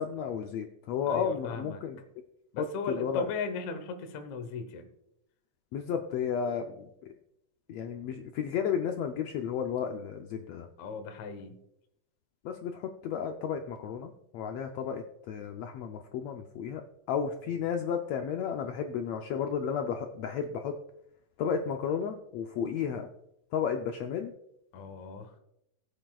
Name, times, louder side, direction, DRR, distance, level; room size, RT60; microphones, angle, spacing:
voice 1, 0.0-2.0 2.6-3.3 5.7-6.9 7.7-10.7 12.4-16.8 17.1-20.8 21.4-23.1 23.5-24.3, left 7 dB, 85° left, 4 dB, 1.4 m, -33 dB
voice 2, 1.1-1.8 2.5-4.9 10.8-11.6 24.7-25.3, left 4 dB, 70° left, 6 dB, 2.1 m, -37 dB
20.0 x 7.7 x 2.3 m, 0.83 s
omnidirectional pair, 3.6 m